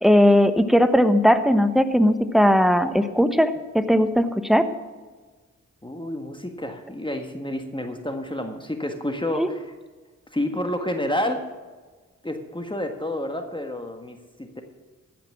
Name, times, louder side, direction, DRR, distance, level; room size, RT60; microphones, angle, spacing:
voice 1, 0.0-4.7 9.3-9.5, equal, ahead, 9 dB, 1.2 m, -18 dB
voice 2, 5.8-9.7 10.3-11.4 12.2-14.6, left 1 dB, 15° left, 5 dB, 1.6 m, -29 dB
15.0 x 6.1 x 7.3 m, 1.4 s
supercardioid pair, 40°, 33 cm